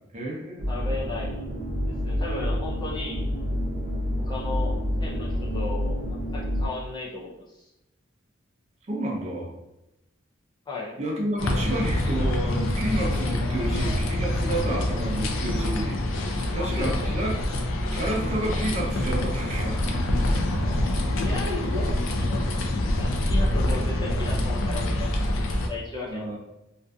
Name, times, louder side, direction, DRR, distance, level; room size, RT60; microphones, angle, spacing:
voice 1, 0.1-0.7 8.9-9.5 11.0-17.4 17.9-20.1 20.4-20.6 26.1-26.4, right 1 dB, 35° right, -2 dB, 0.5 m, -30 dB
sound 1, 0.6-6.7, equal, 85° right, 0.5 m, -28 dB
voice 2, 0.7-1.5 2.0-3.2 4.2-7.7 10.7-11.0 13.6-13.8 16.5-17.2 20.8-22.5 22.9-26.4, left 3 dB, 20° left, -4 dB, 0.5 m, -36 dB
sound 2, 11.4-25.7, left 1 dB, 80° left, 0.4 m, -26 dB
2.5 x 2.5 x 2.3 m, 0.92 s
head